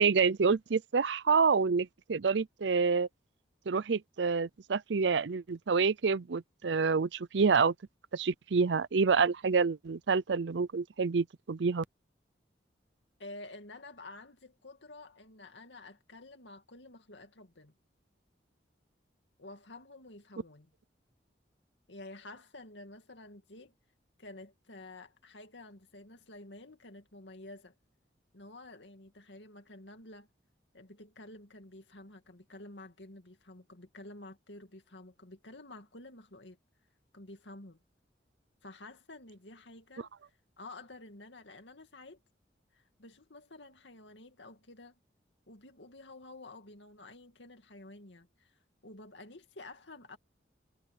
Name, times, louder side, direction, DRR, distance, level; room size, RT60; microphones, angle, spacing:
voice 1, 0.0-3.1 3.7-7.7 8.1-11.8, right 5 dB, 75° right, 0.6 m, -28 dB
voice 2, 13.2-17.7 19.4-20.7 21.9-23.7 24.2-27.7 28.3-30.3 30.7-36.6 37.1-37.8 38.6-40.1 40.6-42.2 42.7-44.9 45.5-48.5 48.8-50.2, left 2 dB, 80° left, 2.4 m, -50 dB
head